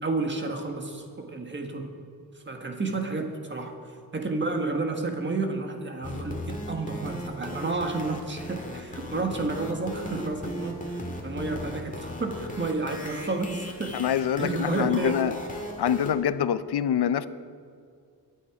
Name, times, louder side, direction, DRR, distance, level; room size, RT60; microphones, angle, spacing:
voice 1, 0.0-2.0 2.3-3.7 4.1-14.0 14.4-15.2, right 3 dB, 30° right, 4 dB, 1.6 m, -31 dB
sound 1, 6.0-16.1, left 1 dB, 20° left, 1.8 m, -38 dB
voice 2, 13.9-15.3 15.8-17.3, left 9 dB, 75° left, 14 dB, 0.6 m, -25 dB
22.5 x 9.2 x 4.9 m, 2.2 s
wide cardioid pair, 155°, 39 cm